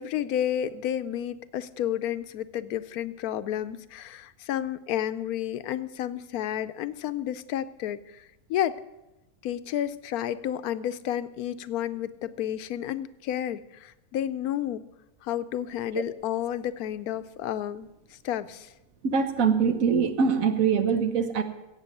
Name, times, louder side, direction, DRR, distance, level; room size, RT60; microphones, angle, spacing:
voice 1, 0.0-8.8 9.4-14.8 15.2-18.7, left 11 dB, 85° left, 13 dB, 1.1 m, -31 dB
voice 2, 19.0-21.4, right 6 dB, 70° right, 9 dB, 1.4 m, -23 dB
16.5 x 7.7 x 6.7 m, 0.98 s
omnidirectional pair, 1.5 m